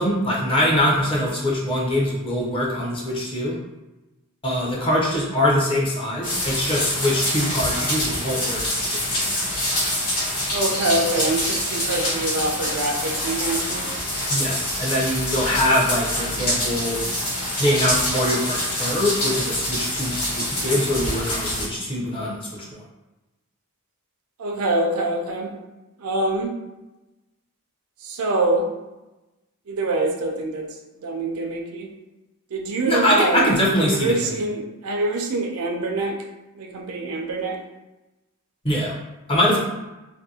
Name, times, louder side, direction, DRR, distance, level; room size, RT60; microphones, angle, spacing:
voice 1, 0.0-3.5 4.4-8.6 9.1-9.2 14.3-17.0 17.6-22.7 32.9-34.3 38.6-38.9 39.3-39.6, left 1 dB, 25° left, -4 dB, 0.6 m, -23 dB
sound 1, 6.2-21.7, left 1 dB, 85° left, 1.2 m, -26 dB
voice 2, 10.5-13.9 24.4-25.5 26.0-26.5 28.0-28.7 29.7-30.7 31.0-31.9 32.5-33.5 33.8-36.2 36.6-37.6, right 2 dB, 75° right, 2 dB, 0.5 m, -25 dB
2.6 x 2.6 x 2.7 m, 1.0 s
head